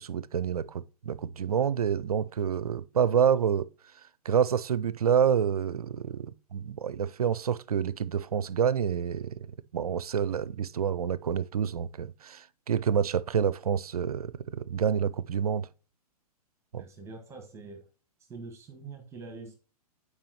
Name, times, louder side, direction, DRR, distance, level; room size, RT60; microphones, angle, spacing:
voice 1, 0.0-3.7 4.3-9.4 9.7-15.7 16.7-16.8, right 8 dB, 70° right, 0.4 m, -28 dB
voice 2, 16.8-17.8 18.3-19.5, right 3 dB, 15° right, 1.3 m, -44 dB
9.3 x 4.7 x 2.9 m
figure-of-eight pair, 110°, 20 cm